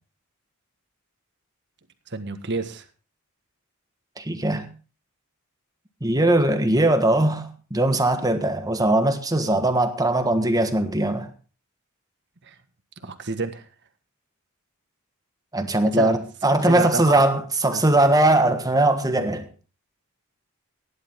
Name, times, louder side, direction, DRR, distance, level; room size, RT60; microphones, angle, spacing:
voice 1, 2.1-2.8 12.4-12.5 13.0-13.7 15.9-16.2 16.6-17.2 17.7-17.8, right 3 dB, 55° right, 1.5 m, -29 dB
voice 2, 4.2-4.7 6.0-11.3 15.5-19.5, right 1 dB, 15° right, 1.4 m, -20 dB
16.5 x 11.0 x 3.6 m
head